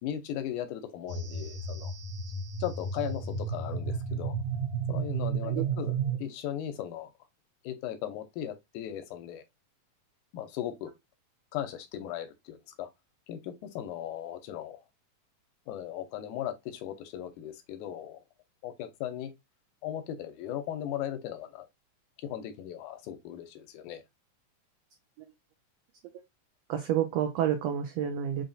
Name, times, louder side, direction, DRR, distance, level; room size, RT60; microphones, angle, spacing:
voice 1, 0.0-1.9 2.6-4.4 4.9-7.1 7.6-9.4 10.3-10.9 11.5-12.9 13.3-14.8 15.7-18.2 18.6-19.3 19.8-21.7 22.2-24.0, left 11 dB, 85° left, 2.1 m, -37 dB
sound 1, 1.1-6.2, right 5 dB, 65° right, 1.6 m, -32 dB
voice 2, 26.7-28.4, right 10 dB, 85° right, 1.4 m, -29 dB
5.2 x 2.8 x 2.5 m
omnidirectional pair, 3.5 m